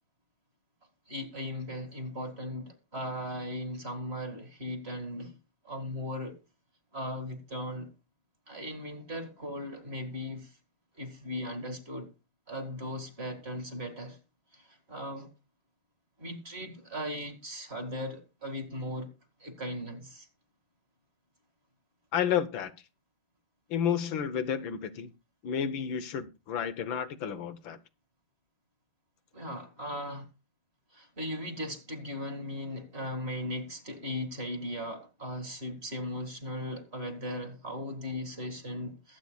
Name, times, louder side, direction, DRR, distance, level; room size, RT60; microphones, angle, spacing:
voice 1, 1.1-5.3 5.6-6.4 6.9-7.9 8.5-10.6 10.9-12.1 12.5-14.2 14.5-15.3 16.2-19.1 19.4-20.3 29.3-30.3 30.9-39.2, equal, 30° right, 2.4 m, -38 dB
voice 2, 22.1-22.7 23.7-25.1 25.4-27.8, left 8 dB, 70° left, 1.5 m, -31 dB
22.0 x 8.7 x 2.3 m
omnidirectional pair, 2.3 m